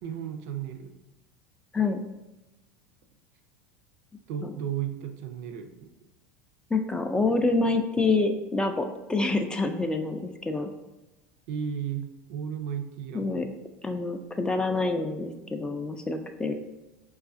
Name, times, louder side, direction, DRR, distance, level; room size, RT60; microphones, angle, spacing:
voice 1, 0.0-0.9 4.3-5.9 11.5-13.5, right 8 dB, 70° right, 6 dB, 0.4 m, -34 dB
voice 2, 6.7-10.7 13.1-13.5 13.8-16.5, left 3 dB, 10° left, 5 dB, 0.3 m, -27 dB
4.7 x 2.3 x 2.5 m, 1.0 s
hypercardioid pair, 95°, 8 cm